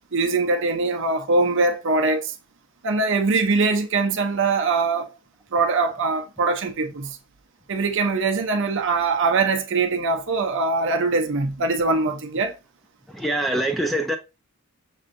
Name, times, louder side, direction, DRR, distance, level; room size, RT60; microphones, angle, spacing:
voice 1, 0.1-2.3 2.8-5.1 5.5-7.2 7.7-12.5, right 3 dB, 55° right, 0.6 m, -22 dB
voice 2, 13.1-14.2, right 1 dB, ahead, 0.4 m, -24 dB
6.2 x 2.6 x 2.5 m
head